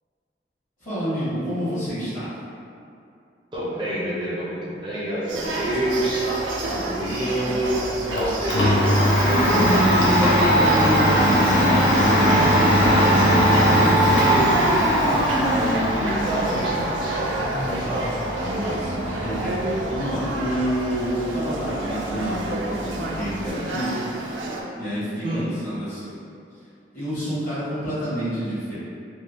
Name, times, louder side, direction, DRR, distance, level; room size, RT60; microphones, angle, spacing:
voice 1, 0.8-2.3 9.2-14.3 17.8-18.0 18.4-23.9 24.7-26.2 26.9-28.8, equal, 45° left, -13 dB, 1.3 m, -28 dB
voice 2, 3.5-6.3 6.7-8.9 15.0-17.2 17.7-18.1 25.2-25.5, right 1 dB, 25° right, -8 dB, 0.4 m, -28 dB
sound 1, 5.3-24.6, right 2 dB, 90° right, 0.4 m, -29 dB
Domestic sounds home sounds, 7.7-23.5, equal, 80° left, 0.7 m, -21 dB
sound 2, 11.1-16.3 16.6-16.7 17.0-17.8, equal, 15° left, 0.7 m, -33 dB
3.2 x 2.1 x 2.5 m, 2.5 s
head